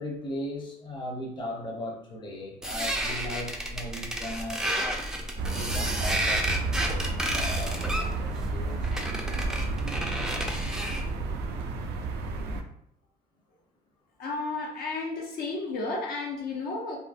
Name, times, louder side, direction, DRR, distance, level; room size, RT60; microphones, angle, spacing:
voice 1, 0.0-5.0 5.5-8.8, left 1 dB, 25° left, -1 dB, 0.7 m, -38 dB
sound 1, 2.6-11.1, right 1 dB, 5° right, 0.4 m, -31 dB
sound 2, 5.4-12.6, right 3 dB, 75° right, 0.4 m, -32 dB
voice 2, 14.2-17.0, left 3 dB, 65° left, 0 dB, 0.7 m, -32 dB
3.6 x 2.1 x 2.5 m, 0.71 s
cardioid pair, 110°, 17 cm